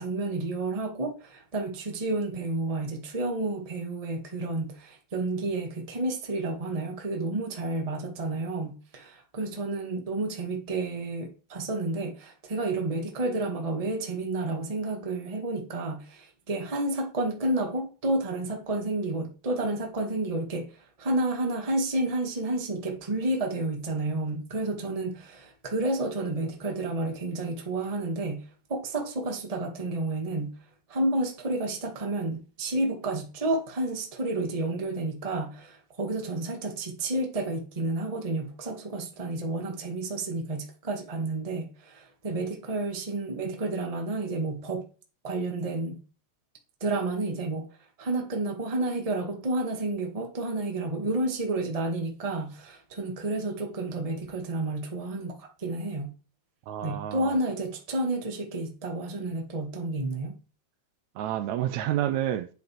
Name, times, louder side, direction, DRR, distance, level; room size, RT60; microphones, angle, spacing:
voice 1, 0.0-20.7 21.0-30.6 30.9-44.8 45.2-46.0 46.8-47.7 48.0-56.1 56.8-60.3, right 2 dB, 20° right, 1.1 m, -30 dB
voice 2, 56.7-57.3 61.2-62.5, right 12 dB, 80° right, 1.9 m, -29 dB
9.3 x 5.2 x 4.5 m
omnidirectional pair, 3.4 m